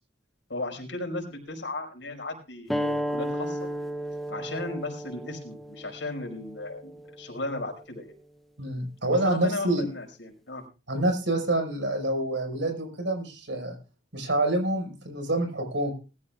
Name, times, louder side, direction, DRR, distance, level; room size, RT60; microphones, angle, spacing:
voice 1, 0.5-3.7 4.3-8.1 9.1-10.6, left 2 dB, 90° left, 1 dB, 5.5 m, -36 dB
sound 1, 2.7-7.8, equal, ahead, 0.6 m, -34 dB
voice 2, 8.6-9.9 10.9-13.8 14.1-15.9, right 1 dB, 80° right, 4 dB, 5.4 m, -27 dB
21.0 x 14.0 x 2.5 m, 0.33 s
head